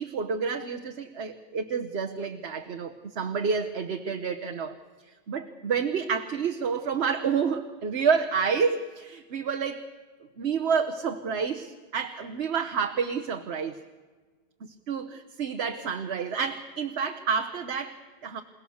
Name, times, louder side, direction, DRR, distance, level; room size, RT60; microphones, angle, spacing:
voice 1, 0.0-4.7 5.3-9.9 10.4-13.7 14.9-18.4, right 6 dB, 70° right, 4 dB, 1.4 m, -29 dB
28.5 x 18.0 x 7.1 m, 1.4 s
omnidirectional pair, 1.1 m